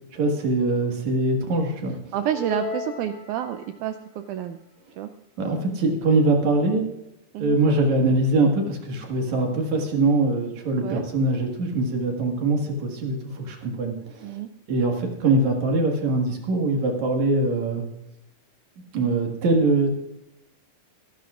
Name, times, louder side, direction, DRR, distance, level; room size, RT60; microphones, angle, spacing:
voice 1, 0.1-2.1 5.4-6.8 7.4-14.3 14.7-17.9 18.9-19.9, right 2 dB, 55° right, 2 dB, 2.9 m, -23 dB
voice 2, 2.1-4.6 5.0-5.1 7.3-7.6 10.8-11.0 14.2-14.5, right 10 dB, 85° right, 9 dB, 1.7 m, -29 dB
sound 1, 2.3-3.9, left 5 dB, 60° left, 6.2 m, -35 dB
24.0 x 12.0 x 2.5 m, 0.87 s
omnidirectional pair, 4.1 m